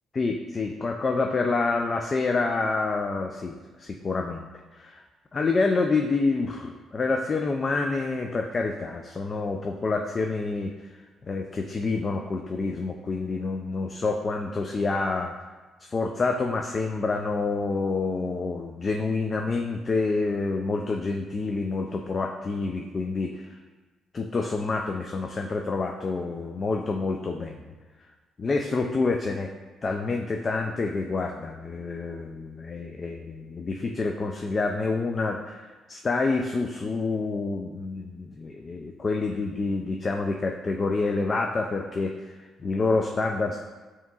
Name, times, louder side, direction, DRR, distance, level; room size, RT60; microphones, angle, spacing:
voice 1, 0.1-4.5 4.7-5.0 5.3-10.9 11.3-15.3 15.8-23.6 24.1-27.6 28.4-29.5 29.8-43.6, left 3 dB, 35° left, 3 dB, 0.3 m, -28 dB
7.0 x 2.9 x 2.4 m, 1.3 s
cardioid pair, 90°, 0 cm